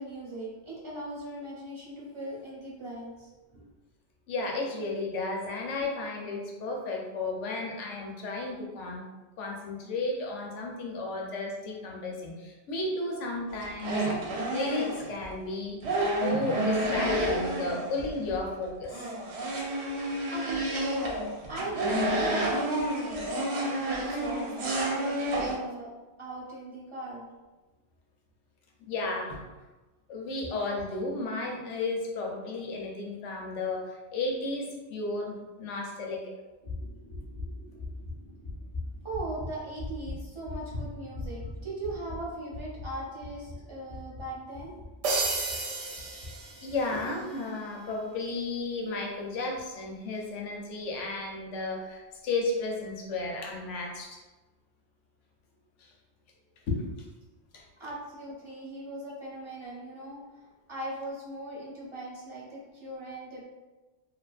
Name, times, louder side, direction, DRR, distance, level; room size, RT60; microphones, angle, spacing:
voice 1, 0.0-3.7 20.0-25.9 26.2-27.3 39.0-44.7 57.8-63.4, right 1 dB, 30° right, -6 dB, 0.7 m, -39 dB
voice 2, 4.3-9.0 9.4-14.1 14.5-15.8 16.2-19.1 28.9-29.4 30.1-36.3 46.1-46.3 46.6-54.2 55.8-55.9 56.7-56.8 57.5-57.6, left 2 dB, 85° left, 0 dB, 0.9 m, -33 dB
sound 1, 13.5-15.3 15.8-18.4 18.6-25.6, right 1 dB, 70° right, 0.8 m, -30 dB
sound 2, 36.6-45.6 46.0-46.3 46.7-47.0, left 2 dB, 40° left, 0.4 m, -40 dB
sound 3, 45.0-47.1, right 3 dB, 90° right, 0.9 m, -32 dB
2.7 x 2.5 x 2.3 m, 1.1 s
omnidirectional pair, 1.2 m